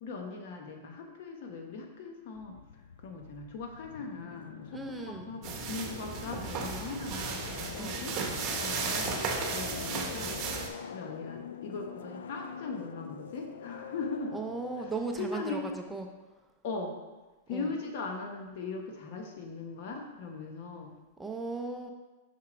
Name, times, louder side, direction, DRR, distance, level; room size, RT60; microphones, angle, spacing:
voice 1, 0.0-2.6 3.0-10.4 10.9-14.4 14.8-14.9 15.2-15.7 16.6-17.0 17.5-20.9, left 4 dB, 60° left, 2 dB, 1.2 m, -39 dB
sound 1, 2.4-15.8, left 7 dB, 85° left, 0.3 m, -44 dB
voice 2, 4.7-5.3 7.8-8.0 14.3-16.1 17.5-17.7 21.2-21.9, right 3 dB, 10° right, 3 dB, 0.6 m, -37 dB
sound 2, 5.4-10.7, right 5 dB, 35° right, 1.0 m, -35 dB
5.7 x 4.2 x 5.1 m, 1.1 s
hypercardioid pair, 125°, 0 cm